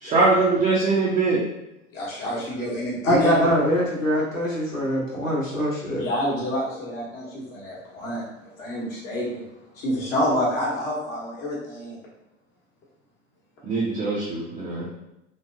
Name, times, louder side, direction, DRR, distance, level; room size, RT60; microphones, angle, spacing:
voice 1, 0.0-1.4 13.6-14.8, right 3 dB, 15° right, -7 dB, 0.4 m, -22 dB
voice 2, 1.9-3.5 6.0-8.2 8.6-9.4 9.8-11.9, equal, 50° left, -5 dB, 1.0 m, -28 dB
voice 3, 3.1-6.0, equal, 90° left, -5 dB, 0.9 m, -23 dB
3.2 x 2.1 x 2.4 m, 0.88 s
figure-of-eight pair, 85°, 38 cm